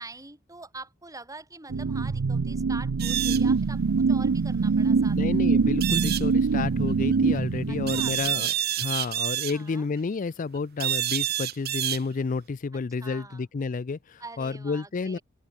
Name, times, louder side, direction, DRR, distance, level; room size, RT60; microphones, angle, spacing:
voice 1, 0.0-3.8 4.1-5.2 7.7-8.5 9.5-9.9 13.0-13.4 14.2-15.2, right 3 dB, 15° right, 5.5 m, -44 dB
sound 1, 1.7-8.4, right 4 dB, 85° right, 0.5 m, -24 dB
sound 2, 3.0-3.4 5.8-6.2 7.9-9.5 10.8-12.0, right 12 dB, 50° right, 0.8 m, -28 dB
voice 2, 5.1-8.5 8.8-15.2, left 4 dB, 40° left, 0.4 m, -30 dB
open air
head